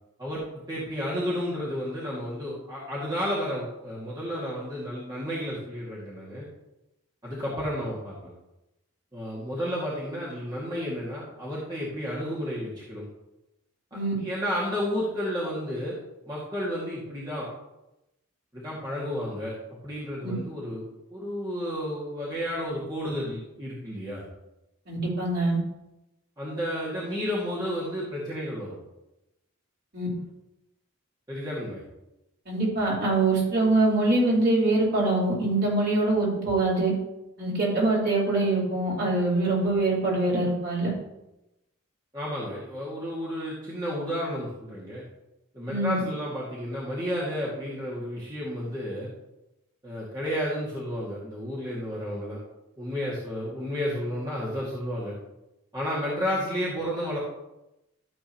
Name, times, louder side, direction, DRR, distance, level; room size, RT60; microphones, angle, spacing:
voice 1, 0.7-6.4 7.2-8.3 9.1-13.0 13.9-16.0 16.3-17.5 18.5-19.5 19.8-20.8 21.1-24.2 26.4-28.8 31.3-31.8 42.1-45.0 45.5-49.1 49.8-52.4 52.8-55.2 55.7-57.2, equal, 20° right, -8 dB, 2.1 m, -32 dB
voice 2, 24.9-25.6 29.9-30.1 32.5-36.9 37.4-40.9 45.7-46.0, right 2 dB, 50° right, -6 dB, 3.8 m, -24 dB
13.5 x 7.6 x 3.0 m, 0.93 s
head